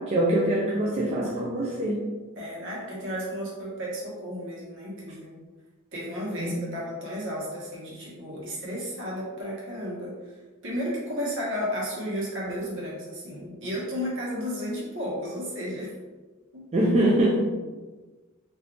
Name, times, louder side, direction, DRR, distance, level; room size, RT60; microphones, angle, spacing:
voice 1, 0.0-2.0 6.4-6.5 16.7-17.4, right 1 dB, 30° right, -5 dB, 0.4 m, -23 dB
voice 2, 2.3-5.4 5.9-15.9 16.5-16.7, equal, 60° right, -5 dB, 1.1 m, -33 dB
2.6 x 2.3 x 3.6 m, 1.3 s
head